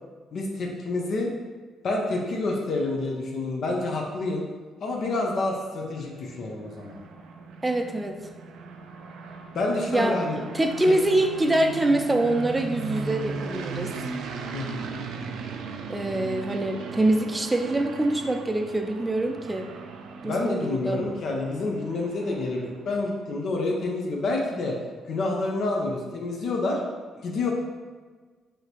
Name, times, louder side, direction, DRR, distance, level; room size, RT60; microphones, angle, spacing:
voice 1, 0.3-1.3 1.8-4.5 4.8-6.9 9.5-10.4 14.5-14.9 20.2-24.8 25.1-26.8 27.2-27.5, left 2 dB, 60° left, 0 dB, 0.5 m, -28 dB
sound 1, 5.8-23.0, right 4 dB, 85° right, 0.4 m, -38 dB
voice 2, 7.6-8.2 9.9-10.2 10.5-13.9 15.9-19.7 20.2-21.0, right 1 dB, 20° right, 5 dB, 0.4 m, -24 dB
4.9 x 2.7 x 2.9 m, 1.4 s
cardioid pair, 90°, 0 cm